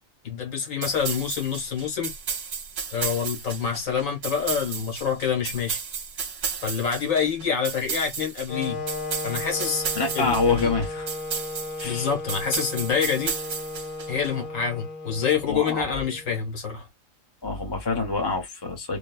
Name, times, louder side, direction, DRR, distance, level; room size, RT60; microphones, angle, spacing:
voice 1, 0.2-2.1 2.9-5.8 6.6-8.8 9.2-9.8 10.1-10.7 11.8-13.3 14.1-16.9, left 7 dB, 80° left, 1.8 m, -27 dB
sound 1, 0.8-14.3, right 6 dB, 70° right, 1.1 m, -33 dB
Wind instrument woodwind instrument, 8.5-16.5, left 2 dB, 55° left, 0.6 m, -35 dB
voice 2, 9.9-11.1 11.8-12.1 15.5-16.0 17.4-19.0, left 3 dB, 20° left, 0.8 m, -26 dB
3.3 x 2.1 x 2.2 m
omnidirectional pair, 1.4 m